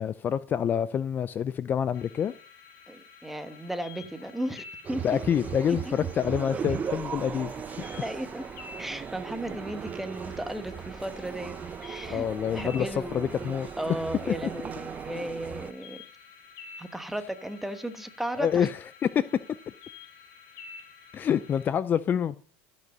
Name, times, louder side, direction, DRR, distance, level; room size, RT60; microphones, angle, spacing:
voice 1, 0.0-2.3 5.0-7.8 12.0-13.7 18.4-18.8 19.1-19.2 21.1-22.4, left 8 dB, 35° left, 0.4 m, -27 dB
sound 1, 1.9-21.7, left 5 dB, 65° left, 2.6 m, -50 dB
voice 2, 2.9-5.2 5.7-6.1 6.5-6.8 8.0-8.4 8.8-12.3 12.5-13.3 13.8-16.0 16.8-18.7, right 1 dB, 5° right, 1.2 m, -35 dB
sound 2, 4.8-15.7, right 7 dB, 30° right, 0.6 m, -38 dB
14.5 x 5.4 x 5.4 m
supercardioid pair, 100°, 6 cm